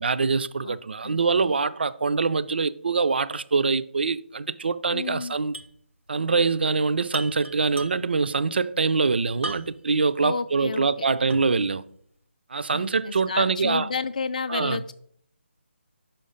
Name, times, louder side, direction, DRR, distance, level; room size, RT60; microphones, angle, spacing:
voice 1, 0.0-5.5 6.1-11.8 12.5-13.9 14.5-14.8, right 4 dB, 55° right, 0.3 m, -24 dB
voice 2, 4.9-5.3 10.2-11.1 12.7-14.9, left 4 dB, 40° left, 0.4 m, -31 dB
sound 1, 5.5-5.8 6.1-6.2 7.1-8.2 9.4-9.9 10.4-10.5 11.3-11.7, right 2 dB, 80° right, 0.7 m, -37 dB
5.7 x 5.0 x 5.0 m
figure-of-eight pair, 150°, 7 cm